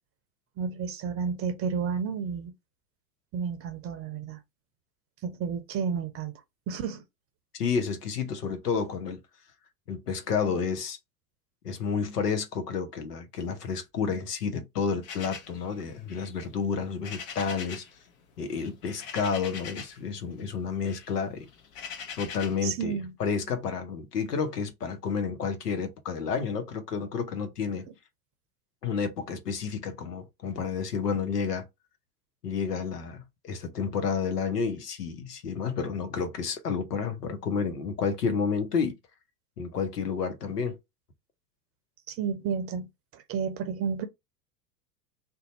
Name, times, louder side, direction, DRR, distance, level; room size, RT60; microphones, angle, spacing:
voice 1, 0.6-2.5 3.3-4.4 5.2-6.3 6.7-7.0 22.6-23.1 42.1-44.1, right 6 dB, 30° right, 0.6 m, -31 dB
voice 2, 7.5-9.2 9.9-11.0 11.6-17.8 18.4-21.5 22.2-27.8 28.8-31.7 32.4-39.0 39.6-40.8, left 5 dB, 80° left, 0.9 m, -30 dB
sound 1, 15.0-18.0 18.2-20.1 20.4-22.7, left 6 dB, 50° left, 1.0 m, -42 dB
2.7 x 2.2 x 4.1 m
figure-of-eight pair, 80°, 47 cm